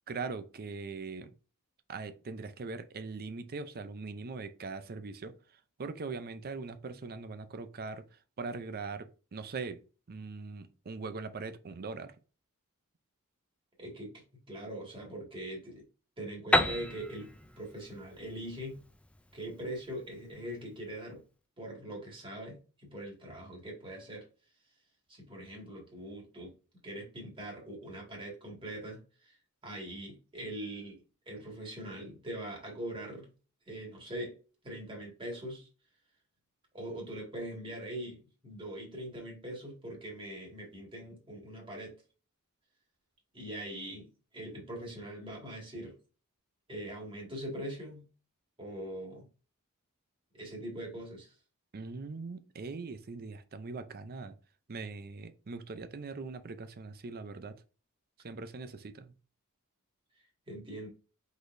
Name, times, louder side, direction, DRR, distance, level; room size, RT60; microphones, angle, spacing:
voice 1, 0.1-1.3 1.9-5.4 5.8-8.1 8.4-12.1 51.7-54.4 54.7-57.6 58.2-59.1, right 4 dB, 45° right, 0.5 m, -41 dB
voice 2, 13.8-15.9 16.2-17.3 17.6-18.8 19.3-21.2 21.6-24.2 25.1-26.5 26.8-29.4 29.6-33.3 33.7-34.4 34.6-35.7 36.7-41.9 43.3-45.9 46.7-48.1 48.6-49.3 50.3-51.3 60.5-60.9, right 1 dB, 25° right, 2.0 m, -42 dB
Piano, 16.5-20.2, left 1 dB, 5° left, 0.3 m, -32 dB
5.0 x 4.0 x 2.6 m
head